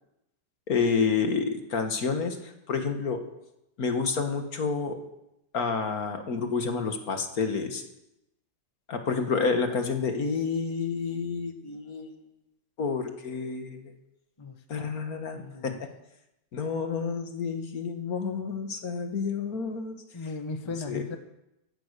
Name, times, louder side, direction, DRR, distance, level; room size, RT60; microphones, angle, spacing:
voice 1, 0.7-3.2 3.8-5.0 5.5-7.8 8.9-12.2 12.8-13.9 14.7-15.9 16.5-19.9 20.9-21.2, left 5 dB, 60° left, 6 dB, 1.9 m, -29 dB
voice 2, 14.4-14.9 15.3-15.8 20.1-21.2, left 4 dB, 20° left, 6 dB, 1.0 m, -37 dB
15.0 x 11.0 x 6.7 m, 0.87 s
omnidirectional pair, 1.8 m